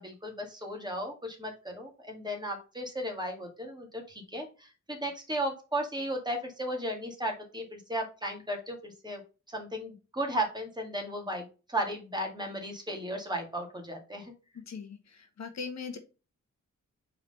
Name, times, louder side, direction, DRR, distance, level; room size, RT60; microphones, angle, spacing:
voice 1, 0.0-9.2 9.5-14.3, right 1 dB, 15° right, 2 dB, 2.1 m, -35 dB
voice 2, 14.5-16.0, left 5 dB, 65° left, 6 dB, 1.2 m, -40 dB
4.6 x 3.8 x 5.5 m, 0.31 s
cardioid pair, 95°, 30 cm